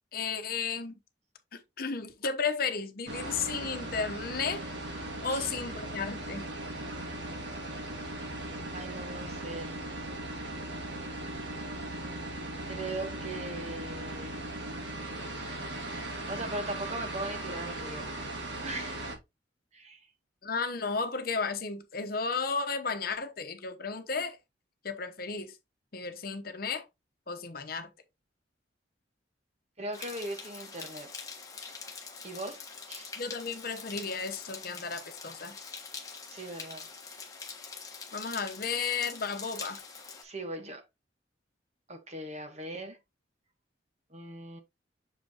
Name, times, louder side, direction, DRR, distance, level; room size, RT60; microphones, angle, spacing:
voice 1, 0.1-0.9 1.5-6.4 20.4-24.4 24.8-25.6 25.9-26.8 27.3-27.9 33.2-35.6 38.1-39.8, left 5 dB, 55° left, 1.0 m, -34 dB
sound 1, 3.1-19.1, right 1 dB, 75° right, 2.0 m, -38 dB
voice 2, 8.7-9.8 12.7-14.4 15.9-18.1 18.6-19.1 19.7-20.1 29.8-31.1 32.2-33.1 36.3-36.9 40.2-40.8 41.9-43.0 44.1-44.6, right 2 dB, 40° right, 1.3 m, -39 dB
sound 2, 29.9-40.2, left 5 dB, 20° left, 1.4 m, -44 dB
6.6 x 5.1 x 2.9 m
head